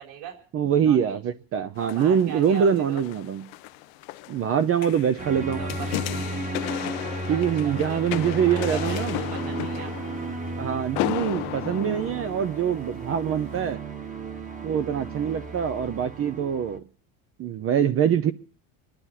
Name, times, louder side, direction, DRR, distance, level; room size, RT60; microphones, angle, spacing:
voice 1, 0.0-0.4 0.8-1.2 1.8-3.0 5.6-5.9 7.3-8.0 8.4-10.1, right 8 dB, 60° right, 5.1 m, -40 dB
voice 2, 0.5-3.4 4.3-5.6 7.3-9.1 10.6-13.8 14.6-16.8 17.4-18.3, right 8 dB, 35° right, 0.8 m, -24 dB
sound 1, 1.8-13.0 13.5-13.6, left 19 dB, 80° left, 0.9 m, -35 dB
sound 2, 5.2-16.8, right 2 dB, 20° right, 1.4 m, -34 dB
27.0 x 11.5 x 4.2 m
cardioid pair, 155°, 42 cm